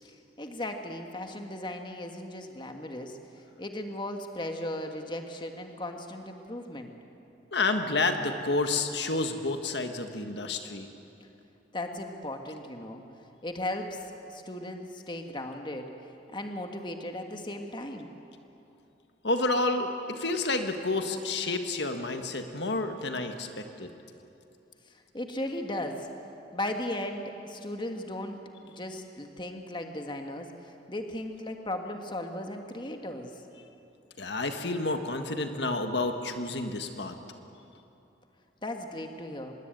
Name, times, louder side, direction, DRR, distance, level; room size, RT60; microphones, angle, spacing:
voice 1, 0.0-6.9 11.2-11.3 11.7-13.0 13.4-18.1 24.9-26.1 26.5-33.4 38.6-39.5, left 1 dB, 25° left, 4 dB, 1.6 m, -37 dB
voice 2, 7.5-10.9 19.2-23.9 34.2-37.1, left 2 dB, 65° left, 6 dB, 1.7 m, -30 dB
25.0 x 21.5 x 9.1 m, 2.9 s
head